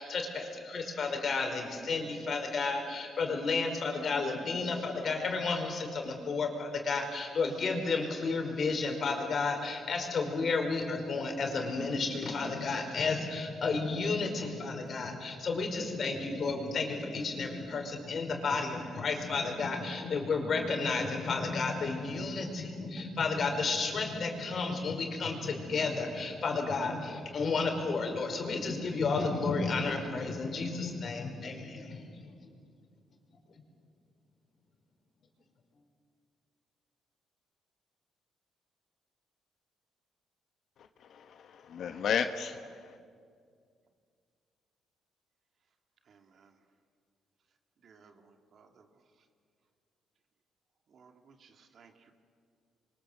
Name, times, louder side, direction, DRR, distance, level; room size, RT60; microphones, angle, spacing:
voice 1, 0.0-32.3, left 4 dB, 50° left, 3 dB, 5.0 m, -32 dB
voice 2, 40.8-43.0, left 7 dB, 65° left, 8 dB, 1.1 m, -34 dB
voice 3, 46.1-46.5 47.8-48.9 50.9-52.1, right 5 dB, 55° right, 5 dB, 2.6 m, -60 dB
28.0 x 24.0 x 7.7 m, 2.2 s
cardioid pair, 90°, 0 cm